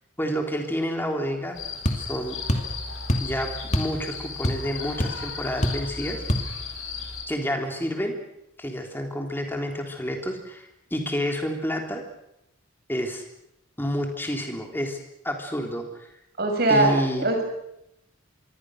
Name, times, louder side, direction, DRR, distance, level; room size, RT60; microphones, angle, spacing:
voice 1, 0.2-1.6 2.0-2.4 3.2-6.2 7.3-8.1 8.6-12.0 12.9-13.2 13.8-15.0 15.2-16.1 16.7-17.2, equal, 10° left, 3 dB, 3.6 m, -29 dB
sound 1, 1.5-7.2, left 5 dB, 75° left, 5.2 m, -35 dB
sound 2, 1.8-2.0 2.5-2.7 3.1-3.3 3.7-4.0 4.2-4.7 5.0-5.1 5.6-5.9 6.3-6.5, equal, 35° left, 2.7 m, -24 dB
voice 2, 16.4-16.9 17.2-17.4, right 2 dB, 50° right, 4 dB, 6.1 m, -20 dB
26.0 x 23.0 x 6.6 m, 0.82 s
head